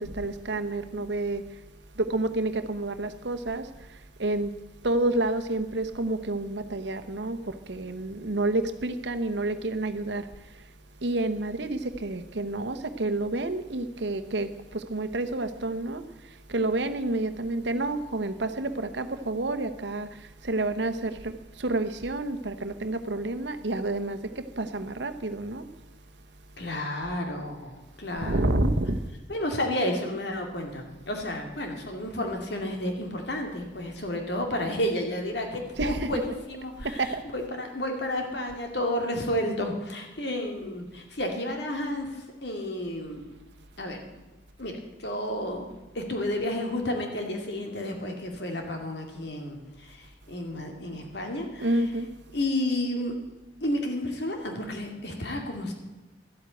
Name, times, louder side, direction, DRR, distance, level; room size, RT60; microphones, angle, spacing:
voice 1, 0.0-1.4 2.0-3.7 4.2-4.5 4.8-10.3 11.0-16.0 16.5-20.1 20.4-21.3 21.6-24.2 24.6-25.6 28.2-29.0 35.8-36.2 36.8-37.2 51.6-52.1, right 2 dB, 70° right, 1.0 m, -29 dB
voice 2, 26.6-28.7 29.3-43.2 43.8-44.0 44.6-45.7 45.9-51.9 52.3-53.2 53.6-55.7, left 1 dB, 65° left, 2.4 m, -31 dB
12.5 x 8.2 x 9.1 m
head